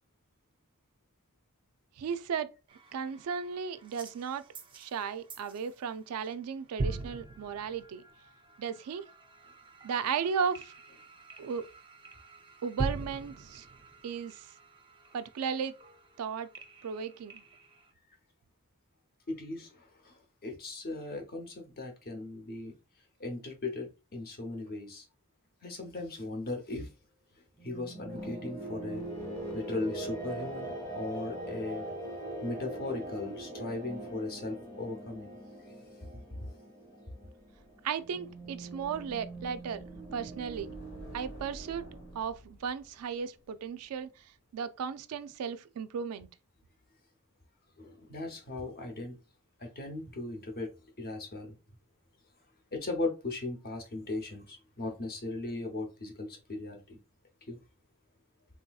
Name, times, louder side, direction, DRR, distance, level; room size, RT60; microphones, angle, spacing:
voice 1, 2.0-2.5 2.9-4.4 4.8-8.0 8.6-9.0 9.8-10.7 11.4-11.7 12.6-13.7 14.0-14.5 15.1-15.8 16.2-16.5 16.8-17.4 37.8-39.8 40.1-40.7 41.1-41.9 42.1-44.1 44.5-46.3, right 6 dB, 85° right, 0.4 m, -35 dB
sound 1, 2.7-5.9 6.2-6.5 6.8-17.9, right 2 dB, 20° right, 0.4 m, -43 dB
voice 2, 19.3-22.7 23.2-25.0 25.6-26.9 27.6-29.1 29.5-31.8 32.4-35.3 47.8-49.2 49.6-50.7 51.0-51.6 52.7-57.0 57.5-57.6, left 2 dB, 45° left, 0.7 m, -38 dB
sound 2, 27.6-42.2, right 1 dB, 20° left, 0.9 m, -42 dB
sound 3, 37.3-44.4, left 1 dB, 75° left, 1.0 m, -52 dB
3.4 x 2.7 x 2.3 m
head